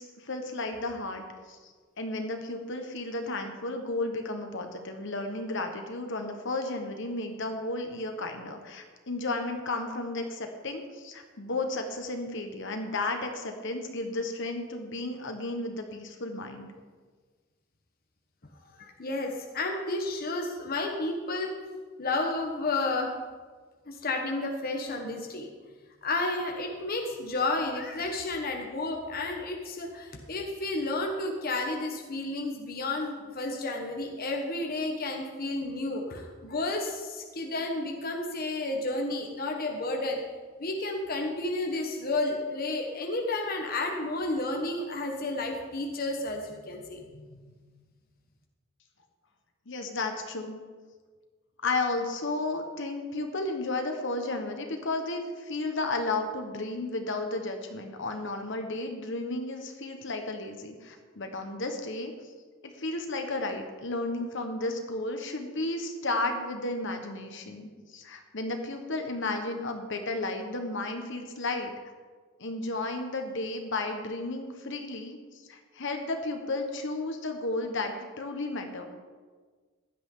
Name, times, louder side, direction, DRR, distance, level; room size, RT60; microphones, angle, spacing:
voice 1, 0.0-1.6 2.0-16.7 49.7-50.6 51.6-62.1 62.6-71.7 72.4-78.9, left 2 dB, 65° left, 5 dB, 1.4 m, -33 dB
voice 2, 18.7-21.5 22.0-23.1 23.9-25.5 26.0-40.2 40.6-47.6, left 2 dB, 45° left, 2 dB, 1.3 m, -31 dB
16.0 x 11.5 x 3.9 m, 1.5 s
head